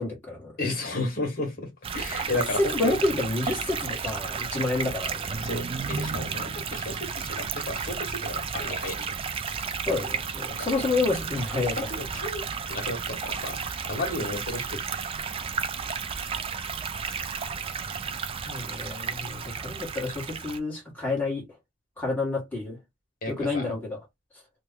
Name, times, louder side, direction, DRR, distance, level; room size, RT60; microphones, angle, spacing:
voice 1, 0.0-0.5 2.6-5.4 9.9-11.9 18.5-21.5 22.0-22.8 23.3-24.0, left 3 dB, 10° left, 1.4 m, -29 dB
voice 2, 0.6-1.7 1.9-3.0 5.4-9.2 10.5-10.6 11.6-14.8 17.0-17.3 23.2-23.7, left 2 dB, 50° left, 1.4 m, -33 dB
sound 1, 1.8-20.6, right 6 dB, 30° right, 0.3 m, -32 dB
2.9 x 2.3 x 3.6 m
head